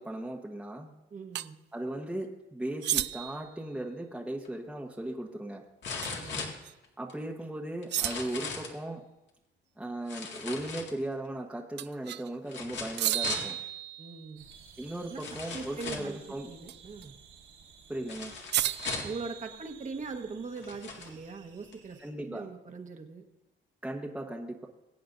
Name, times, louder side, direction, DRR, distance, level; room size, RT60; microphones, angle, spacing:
voice 1, 0.0-0.9 1.7-5.6 7.0-9.0 9.8-13.6 14.8-16.5 17.9-18.3 22.0-22.5 23.8-24.7, right 1 dB, 5° right, -1 dB, 1.2 m, -37 dB
voice 2, 1.1-1.6 6.1-6.5 13.3-13.5 14.0-14.5 15.1-15.2 15.5-16.2 16.4-17.1 19.0-22.0 22.2-23.2, right 4 dB, 40° right, 4 dB, 1.4 m, -41 dB
sound 1, 1.3-1.5 2.8-3.5 6.0-6.3 6.6-6.7 7.9-8.5 11.8-12.3 13.0-14.4 16.7-17.1 18.5-19.9, right 13 dB, 60° right, 0.4 m, -33 dB
sound 2, 4.4-4.5 5.8-7.1 7.8-8.8 10.1-11.3 12.5-13.5 14.5-14.6 15.2-16.2 18.1-19.2 20.0-20.1 20.5-21.1 21.7-21.8, left 4 dB, 65° left, 2.1 m, -39 dB
sound 3, 14.4-22.1, right 6 dB, 85° right, 4.7 m, -55 dB
22.0 x 8.6 x 2.6 m, 0.94 s
cardioid pair, 90°, 20 cm